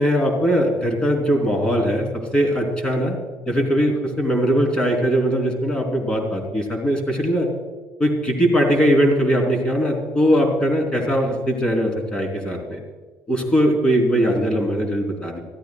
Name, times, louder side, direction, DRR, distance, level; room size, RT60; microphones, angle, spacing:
voice 1, 0.0-3.2 3.5-7.5 8.0-12.8 13.3-15.4, equal, 15° left, 2 dB, 3.6 m, -20 dB
24.0 x 15.0 x 2.4 m, 1.4 s
cardioid pair, 150°, 6 cm